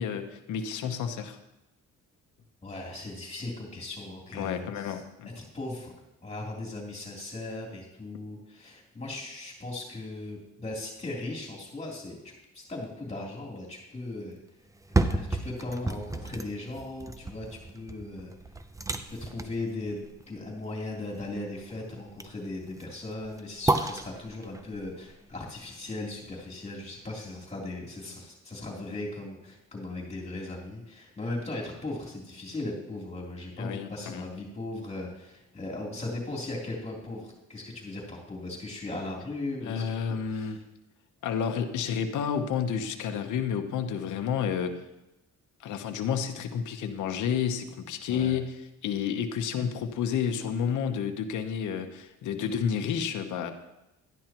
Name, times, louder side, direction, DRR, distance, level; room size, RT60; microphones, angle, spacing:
voice 1, 0.0-1.4 4.3-5.3 33.6-34.2 39.6-40.6 41.2-44.8 45.6-53.5, left 7 dB, 75° left, 5 dB, 1.0 m, -30 dB
voice 2, 2.6-4.9 5.3-5.9 6.2-14.4 15.0-18.3 19.1-40.0 40.3-40.6 48.1-48.4, left 2 dB, 20° left, -3 dB, 3.2 m, -38 dB
sound 1, 14.7-26.7 27.1-27.2, right 2 dB, 10° right, 0.6 m, -33 dB
12.0 x 10.5 x 3.0 m, 0.92 s
cardioid pair, 90°, 30 cm